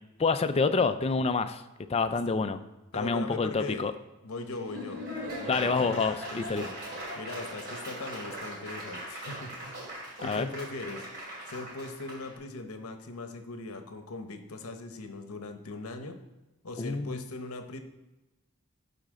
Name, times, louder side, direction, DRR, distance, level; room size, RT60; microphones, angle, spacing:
voice 1, 0.2-1.6 1.9-2.6 2.9-3.9 5.5-6.6 10.2-10.5 16.8-17.2, left 4 dB, 25° left, 10 dB, 0.4 m, -27 dB
voice 2, 2.1-2.4 2.9-3.9 4.2-5.9 6.3-6.7 7.1-9.9 10.2-11.1 11.5-16.2 16.6-17.8, left 3 dB, 70° left, 7 dB, 0.9 m, -40 dB
Laughter / Applause, 4.4-12.3, equal, 45° right, 2.7 m, -40 dB
11.5 x 4.1 x 3.6 m, 1.0 s
head